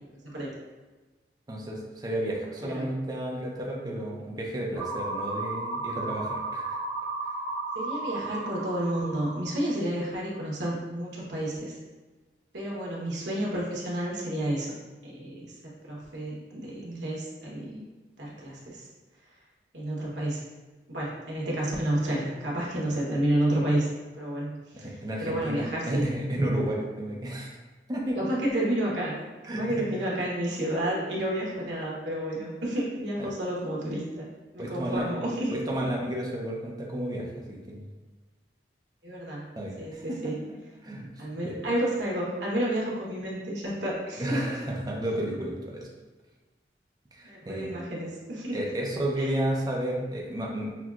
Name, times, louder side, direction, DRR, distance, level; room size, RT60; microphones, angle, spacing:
voice 1, 0.2-0.6 2.6-2.9 7.7-11.8 12.5-14.7 15.0-17.8 18.2-18.9 19.7-20.4 20.9-23.9 24.2-26.0 28.1-29.2 29.5-34.3 34.5-35.5 35.8-35.9 39.0-39.5 39.8-40.4 41.2-44.5 47.2-48.6 49.2-49.3, right 1 dB, 80° right, -4 dB, 1.1 m, -30 dB
voice 2, 1.5-6.8 24.7-27.5 27.9-28.4 29.5-29.6 33.2-33.3 34.6-35.1 35.5-37.9 39.6-40.3 40.8-41.5 44.2-45.9 47.1-47.7 48.5-50.7, right 1 dB, 20° right, -3 dB, 0.6 m, -32 dB
sound 1, 4.8-9.8, right 3 dB, 20° left, 0.9 m, -34 dB
5.9 x 2.3 x 2.4 m, 1.2 s
head